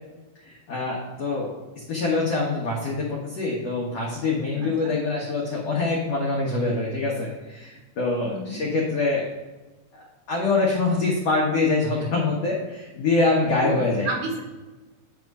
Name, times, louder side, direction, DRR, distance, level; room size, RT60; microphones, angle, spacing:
voice 1, 0.5-1.5 1.9-9.2 9.9-14.1, left 3 dB, 70° left, -3 dB, 1.5 m, -25 dB
voice 2, 4.5-4.9 8.2-8.6 13.6-14.4, right 2 dB, 75° right, 0 dB, 3.5 m, -32 dB
9.7 x 3.6 x 5.3 m, 1.2 s
omnidirectional pair, 4.6 m